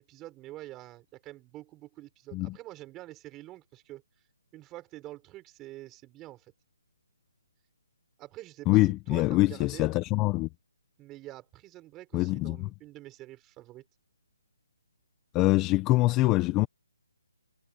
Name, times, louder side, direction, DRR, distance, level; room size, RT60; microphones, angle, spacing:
voice 1, 0.0-4.0 4.5-6.5 8.2-9.9 11.0-13.8, right 16 dB, 10° right, 6.6 m, -46 dB
voice 2, 8.7-10.5 12.1-12.7 15.3-16.7, left 19 dB, 15° left, 0.8 m, -24 dB
hypercardioid pair, 170°, 0 cm